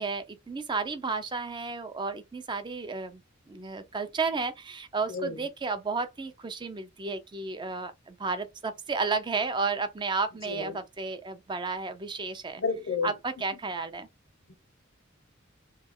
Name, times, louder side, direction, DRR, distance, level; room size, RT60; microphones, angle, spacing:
voice 1, 0.0-3.2 3.5-12.6 13.0-14.1, right 4 dB, 25° right, 0.4 m, -32 dB
voice 2, 12.6-13.1, left 5 dB, 65° left, 0.7 m, -29 dB
3.2 x 2.3 x 3.6 m
head